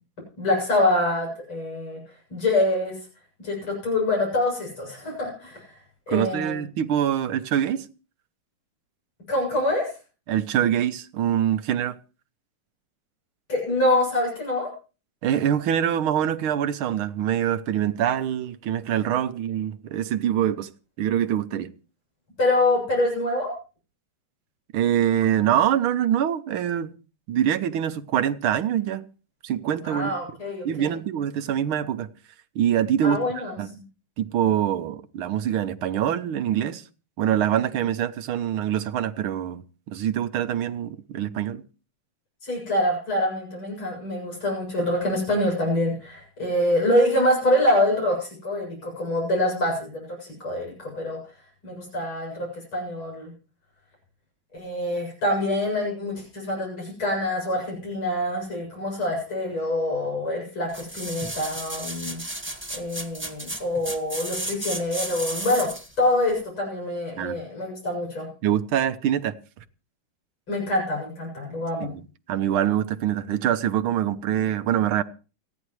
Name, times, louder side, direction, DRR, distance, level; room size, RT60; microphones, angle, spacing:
voice 1, 0.4-2.0 2.3-3.0 3.4-5.7 6.1-6.6 9.3-9.9 13.5-14.7 22.4-23.5 29.8-30.9 33.0-33.6 42.4-51.2 51.6-53.3 54.5-62.2 62.7-65.7 66.0-68.3 70.5-71.9, left 1 dB, 90° left, 8.6 m, -25 dB
voice 2, 6.1-7.9 10.3-12.0 15.2-20.7 21.0-21.7 24.7-27.0 27.3-29.0 29.4-30.2 30.7-32.1 32.6-33.2 33.6-33.8 34.2-36.8 37.2-39.6 39.9-41.6 67.2-67.4 68.4-69.3 71.8-72.0 72.3-75.0, right 10 dB, 90° right, 1.7 m, -24 dB
sound 1, 60.7-65.9 66.4-66.5, right 1 dB, 5° right, 1.3 m, -33 dB
29.0 x 10.0 x 3.2 m
omnidirectional pair, 2.2 m